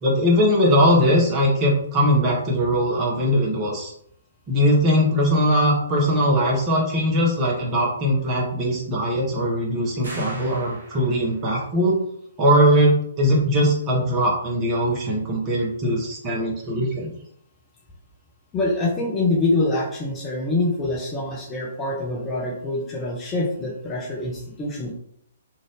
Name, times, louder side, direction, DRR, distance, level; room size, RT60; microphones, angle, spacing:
voice 1, 0.0-3.9 4.5-12.0 12.4-17.1, equal, 25° right, -3 dB, 0.9 m, -20 dB
sound 1, 10.0-11.5, right 1 dB, 60° right, 1.1 m, -40 dB
voice 2, 18.5-24.9, left 2 dB, 15° left, -3 dB, 0.7 m, -25 dB
2.6 x 2.5 x 3.4 m, 0.68 s
figure-of-eight pair, 120°, 0 cm